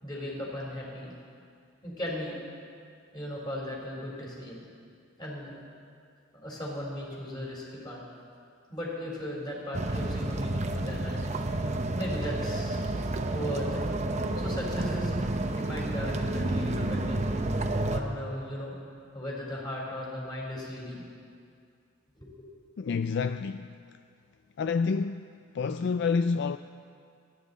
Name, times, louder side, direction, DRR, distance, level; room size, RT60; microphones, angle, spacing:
voice 1, 0.0-1.1 1.8-2.3 3.1-4.5 5.2-5.5 6.4-8.0 8.7-11.2 11.9-12.8 13.3-13.8 14.4-15.1 15.5-17.2 17.9-18.7 19.1-21.0 22.2-22.5 25.7-25.8, left 1 dB, 20° left, 4.0 m, -37 dB
sound 1, 9.7-18.0, right 2 dB, 35° right, 0.8 m, -30 dB
voice 2, 22.8-23.8 24.6-25.3 25.5-26.6, left 5 dB, 60° left, 0.3 m, -28 dB
29.5 x 10.5 x 4.1 m
head